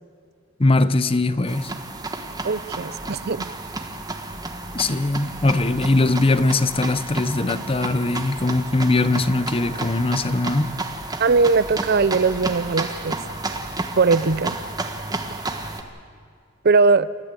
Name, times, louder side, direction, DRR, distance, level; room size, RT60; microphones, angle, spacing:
voice 1, 0.6-1.7 4.7-10.7, left 2 dB, 30° left, 14 dB, 0.8 m, -21 dB
sound 1, 1.5-15.8, right 2 dB, 20° right, 1.4 m, -32 dB
voice 2, 2.4-3.5 11.2-13.2 14.0-14.5 16.6-17.1, right 4 dB, 50° right, 17 dB, 0.6 m, -19 dB
29.0 x 14.0 x 8.2 m, 2.2 s
head